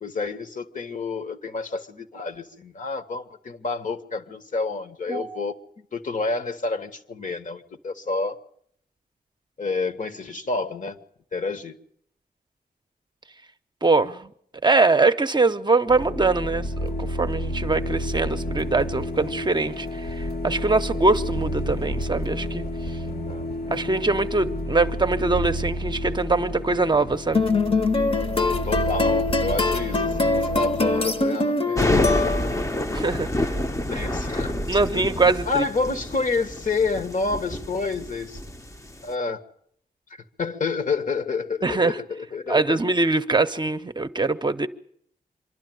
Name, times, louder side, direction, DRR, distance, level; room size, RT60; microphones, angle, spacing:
voice 1, 0.0-8.4 9.6-11.0 11.3-11.8 23.1-23.6 28.6-32.5 33.9-35.1 35.4-38.4 39.0-39.4 40.1-42.8, left 4 dB, 55° left, 1.5 m, -29 dB
voice 2, 13.8-14.3 14.6-22.6 23.7-27.4 32.9-33.5 34.7-35.6 41.6-42.0 42.5-44.7, right 3 dB, 30° right, 0.7 m, -23 dB
sound 1, 15.9-31.3, equal, 85° left, 2.1 m, -30 dB
sound 2, 27.3-32.7, left 3 dB, 35° left, 1.1 m, -23 dB
sound 3, 31.8-39.1, left 1 dB, 20° left, 0.8 m, -28 dB
25.5 x 12.0 x 9.3 m
wide cardioid pair, 105°, 16 cm